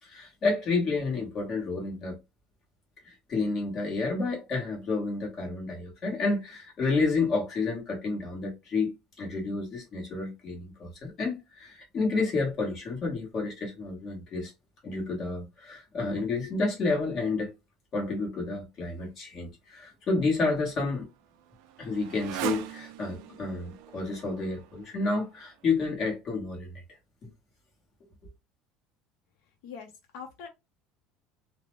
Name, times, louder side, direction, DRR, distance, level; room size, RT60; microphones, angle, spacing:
voice 1, 0.0-2.2 3.0-8.9 9.2-14.5 14.8-17.5 17.9-21.1 21.8-26.7, left 3 dB, 30° left, 1.2 m, -30 dB
Motorcycle, 20.3-25.7, right 12 dB, 65° right, 0.3 m, -41 dB
voice 2, 29.6-30.5, left 6 dB, 65° left, 0.7 m, -43 dB
2.6 x 2.1 x 3.1 m
cardioid pair, 175°, 0 cm